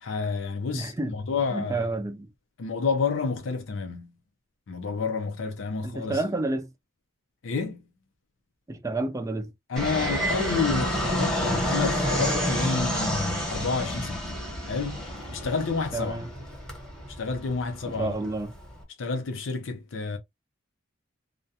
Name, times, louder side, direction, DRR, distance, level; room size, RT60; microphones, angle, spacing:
voice 1, 0.0-1.9 2.6-4.1 4.7-6.2 7.4-7.8 9.7-14.2 14.7-15.0 15.3-16.3 17.2-18.2 19.0-20.2, left 4 dB, 80° left, 0.5 m, -29 dB
voice 2, 0.7-1.2 1.5-2.3 5.8-6.7 8.7-9.5 15.9-16.3 17.8-18.5, right 2 dB, 15° right, 0.4 m, -30 dB
Fixed-wing aircraft airplane, 9.8-18.8, equal, 5° left, 0.9 m, -29 dB
2.4 x 2.2 x 2.7 m
head